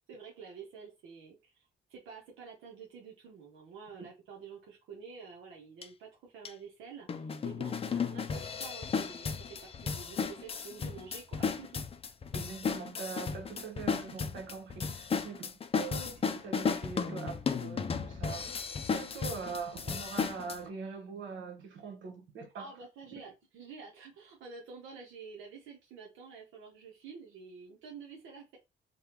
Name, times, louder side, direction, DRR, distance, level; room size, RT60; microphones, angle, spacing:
voice 1, 0.1-11.7 22.5-28.6, right 5 dB, 90° right, 0.9 m, -49 dB
sound 1, 5.8-5.9 6.4-6.5 7.1-20.6, left 5 dB, 30° left, 0.4 m, -34 dB
voice 2, 12.3-22.7 23.2-23.3, right 5 dB, 70° right, 1.1 m, -43 dB
3.3 x 2.3 x 2.9 m
cardioid pair, 90°, 20 cm